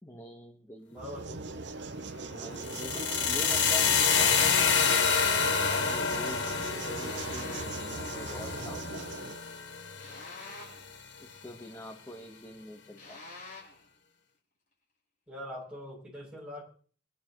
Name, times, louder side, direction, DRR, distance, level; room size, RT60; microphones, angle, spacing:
voice 1, 0.0-1.2 2.3-5.3 5.7-6.5 6.8-9.3 11.2-13.2, left 1 dB, 15° left, 3 dB, 1.3 m, -45 dB
voice 2, 0.9-1.4 15.3-16.6, left 1 dB, 5° right, -4 dB, 7.4 m, -42 dB
sound 1, 1.0-9.4, right 3 dB, 70° right, 0.8 m, -40 dB
sound 2, 2.6-10.6, left 6 dB, 85° left, 1.5 m, -28 dB
sound 3, 7.0-7.9 10.0-11.0 13.0-13.8, left 3 dB, 45° left, 6.2 m, -47 dB
22.5 x 11.0 x 3.1 m, 0.44 s
head